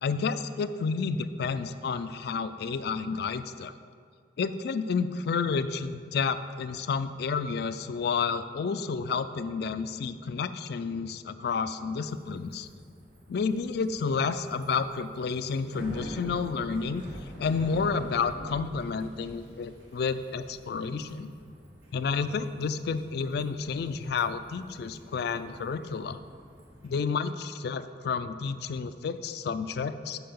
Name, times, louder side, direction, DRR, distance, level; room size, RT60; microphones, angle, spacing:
voice 1, 0.0-3.7 4.4-12.7 13.3-17.0 17.4-21.3 21.9-26.2 26.8-30.2, left 5 dB, 60° left, 12 dB, 0.3 m, -30 dB
Bicycle, 12.0-26.9, equal, 85° right, 1.8 m, -46 dB
5.6 x 5.6 x 6.9 m, 2.1 s
head